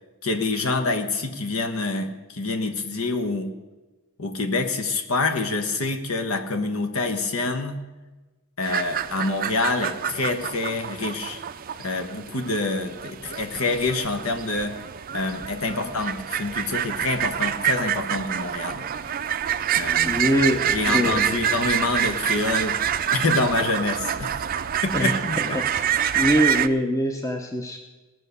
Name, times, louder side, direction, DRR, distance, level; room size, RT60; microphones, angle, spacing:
voice 1, 0.2-3.5 4.2-7.8 8.6-11.4 11.8-14.8 15.1-18.9 19.8-20.2 20.7-22.8 23.1-24.4 24.8-25.6, left 3 dB, 75° left, 6 dB, 1.3 m, -26 dB
sound 1, 8.6-26.7, right 9 dB, 40° right, 0.4 m, -27 dB
voice 2, 20.0-21.4 24.9-27.8, equal, 15° left, 3 dB, 0.7 m, -24 dB
18.0 x 6.3 x 6.8 m, 1.2 s
head